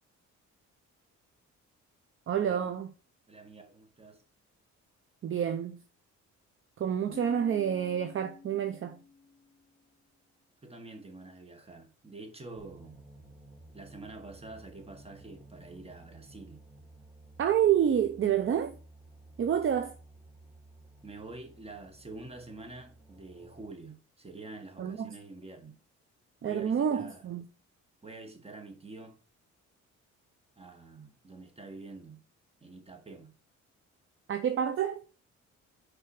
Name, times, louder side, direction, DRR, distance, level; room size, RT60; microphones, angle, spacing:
voice 1, 2.3-2.9 5.2-5.8 6.8-9.0 17.4-18.7 19.4-19.9 24.8-25.2 26.4-27.4 34.3-35.0, right 9 dB, 45° right, 0.6 m, -28 dB
voice 2, 3.3-4.2 10.6-13.0 13.7-16.6 21.0-25.8 26.4-27.2 28.0-29.2 30.6-32.2 32.6-33.3, right 3 dB, 20° right, 1.5 m, -47 dB
Keyboard (musical), 7.1-9.8, left 5 dB, 55° left, 0.8 m, -50 dB
sound 1, 12.6-23.8, right 2 dB, ahead, 1.9 m, -55 dB
5.7 x 4.0 x 4.9 m
cardioid pair, 90°, 30 cm